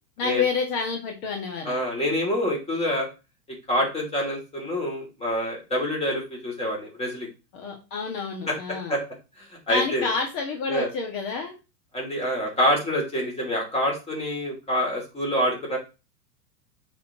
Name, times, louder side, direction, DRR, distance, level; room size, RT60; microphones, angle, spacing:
voice 1, 0.2-1.8 7.5-9.0 9.7-11.5, left 4 dB, 50° left, 2 dB, 2.0 m, -29 dB
voice 2, 1.6-3.1 3.5-7.3 8.5-8.6 8.9-9.0 9.4-10.1 10.7-10.9 11.9-15.8, equal, 10° left, -1 dB, 2.9 m, -26 dB
8.4 x 4.4 x 3.0 m, 0.28 s
hypercardioid pair, 120°, 49 cm